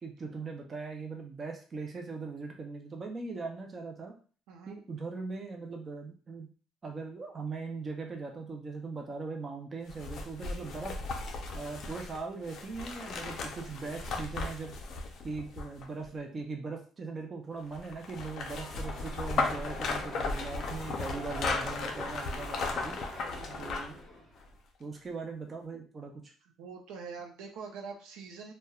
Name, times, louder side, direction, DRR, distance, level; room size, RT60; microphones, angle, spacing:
voice 1, 0.0-4.1 4.7-6.5 6.8-10.9 11.5-14.7 15.2-23.0 23.6-24.0 24.8-26.2, right 4 dB, 25° right, 2 dB, 0.4 m, -40 dB
voice 2, 4.5-4.8 23.3-23.7 26.6-28.5, right 5 dB, 90° right, 2 dB, 0.5 m, -44 dB
sound 1, 9.9-16.1 17.7-24.0 24.4-24.5, left 3 dB, 45° left, 0.4 m, -36 dB
sound 2, 18.5-24.6, equal, 5° left, 0.9 m, -45 dB
3.0 x 2.1 x 2.3 m, 0.39 s
cardioid pair, 160°, 0 cm